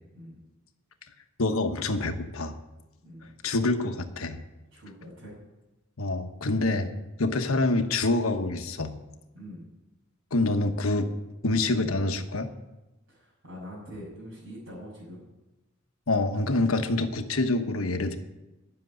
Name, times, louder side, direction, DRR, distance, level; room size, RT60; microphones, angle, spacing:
voice 1, 1.4-2.6 3.4-4.4 6.0-6.9 7.2-8.9 10.3-11.1 11.4-12.5 16.1-18.2, left 2 dB, 80° left, 6 dB, 1.2 m, -26 dB
voice 2, 3.0-3.4 4.7-5.4 9.3-9.6 13.1-15.3, equal, 75° right, -8 dB, 6.0 m, -44 dB
11.0 x 8.0 x 9.7 m, 1.0 s
head